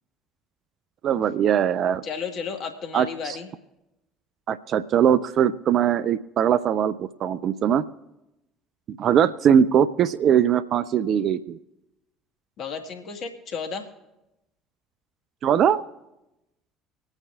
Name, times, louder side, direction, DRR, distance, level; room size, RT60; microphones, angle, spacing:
voice 1, 1.0-2.0 2.9-3.4 4.5-7.8 8.9-11.6 15.4-15.8, right 9 dB, 50° right, 14 dB, 0.4 m, -21 dB
voice 2, 2.0-3.5 12.6-13.9, left 5 dB, 55° left, 5 dB, 1.5 m, -33 dB
25.5 x 8.9 x 2.4 m, 0.94 s
hypercardioid pair, 60°, 0 cm